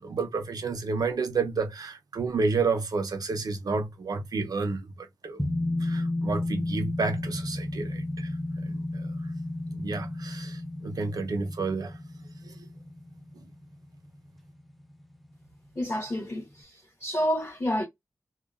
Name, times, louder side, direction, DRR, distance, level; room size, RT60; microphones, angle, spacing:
voice 1, 0.0-5.5 5.8-8.3 8.6-9.1 9.7-12.0 12.4-12.5, right 4 dB, 70° right, 0.6 m, -30 dB
sound 1, 5.4-14.5 14.8-14.9, left 1 dB, ahead, 0.4 m, -33 dB
voice 2, 15.7-17.8, equal, 35° left, 1.1 m, -29 dB
2.8 x 2.2 x 2.4 m
wide cardioid pair, 105°, 7 cm